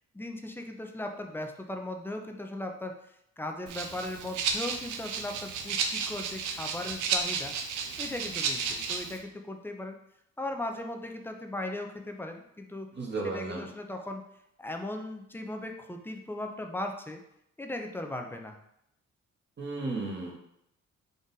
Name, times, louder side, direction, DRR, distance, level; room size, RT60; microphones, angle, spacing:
voice 1, 0.1-3.0 3.4-7.5 8.0-10.0 10.4-12.9 13.2-14.2 14.6-17.2 17.6-18.6, left 1 dB, 5° left, 4 dB, 0.5 m, -38 dB
Rattle (instrument), 3.7-9.2, right 5 dB, 85° right, 0.6 m, -33 dB
voice 2, 13.0-13.6 19.6-20.3, right 3 dB, 35° right, -2 dB, 1.1 m, -34 dB
3.9 x 2.5 x 3.9 m, 0.77 s
cardioid pair, 90°, 30 cm